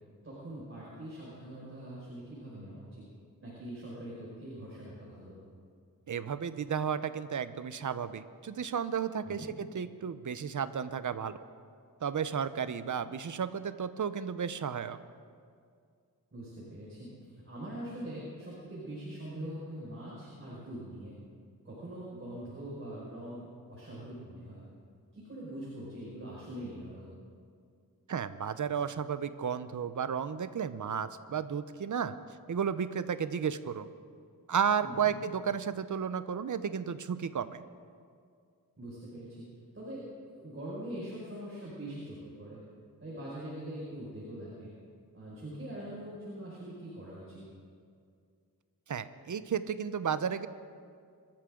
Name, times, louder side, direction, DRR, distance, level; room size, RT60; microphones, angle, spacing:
voice 1, 0.2-3.0 3.4-5.4 9.2-9.5 16.3-17.1 17.4-21.1 21.6-24.6 25.1-27.1 34.8-35.1 38.8-39.5 39.7-42.6 43.0-44.7 45.1-47.4, right 1 dB, 35° right, -7 dB, 5.6 m, -43 dB
voice 2, 6.1-11.4 12.0-15.0 28.1-32.2 32.5-33.9 34.5-37.6 48.9-50.5, right 7 dB, 55° right, 12 dB, 0.8 m, -33 dB
26.5 x 13.5 x 3.9 m, 2.2 s
wide cardioid pair, 90°, 36 cm